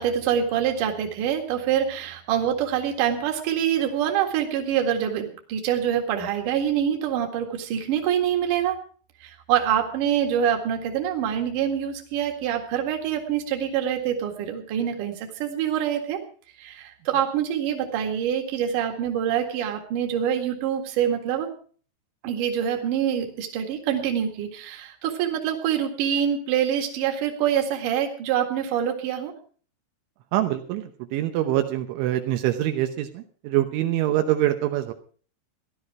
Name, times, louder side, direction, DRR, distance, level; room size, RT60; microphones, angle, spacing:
voice 1, 0.0-8.8 9.2-16.2 16.6-21.5 22.2-29.3, right 9 dB, 55° right, 3 dB, 2.8 m, -25 dB
voice 2, 30.3-34.9, right 13 dB, 80° right, 6 dB, 3.3 m, -25 dB
16.5 x 11.5 x 4.8 m, 0.44 s
omnidirectional pair, 5.6 m